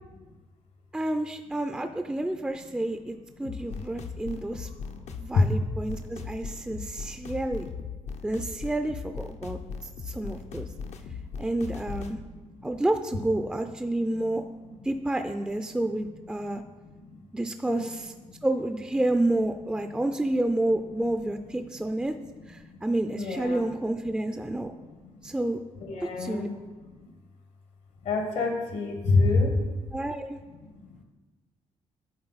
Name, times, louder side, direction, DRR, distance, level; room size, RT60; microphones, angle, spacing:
voice 1, 0.9-4.7 5.2-7.7 8.2-9.6 10.1-10.7 11.4-12.2 12.6-14.4 14.8-16.6 17.3-18.1 18.4-22.1 22.5-24.7 25.2-25.6 26.2-26.5 29.9-30.4, right 1 dB, 5° right, 7 dB, 0.4 m, -29 dB
sound 1, 3.4-12.2, left 5 dB, 65° left, 0.6 m, -39 dB
voice 2, 4.5-5.1 5.3-5.4 10.6-11.3 12.0-12.7 13.8-14.3 16.4-17.2 17.7-17.9 18.3-18.5 19.8-20.0 22.4-22.8 23.2-23.7 24.5-25.3 25.8-27.1 28.0-29.7 30.6-31.0, left 3 dB, 80° left, 3 dB, 1.4 m, -30 dB
10.5 x 3.8 x 4.0 m, 1.2 s
cardioid pair, 75°, 13 cm